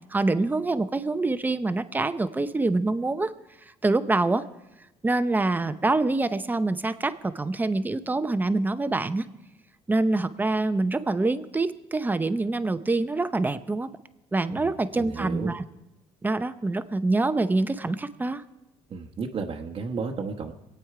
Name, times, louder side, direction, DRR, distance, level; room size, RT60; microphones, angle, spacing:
voice 1, 0.1-3.3 3.8-4.4 5.0-9.3 9.9-13.9 14.3-15.6 16.2-18.4, right 2 dB, 15° right, 11 dB, 0.7 m, -25 dB
voice 2, 14.5-15.5 18.9-20.5, right 5 dB, 45° right, 1 dB, 1.1 m, -33 dB
23.5 x 8.9 x 4.9 m, 0.96 s
cardioid pair, 105°, 12 cm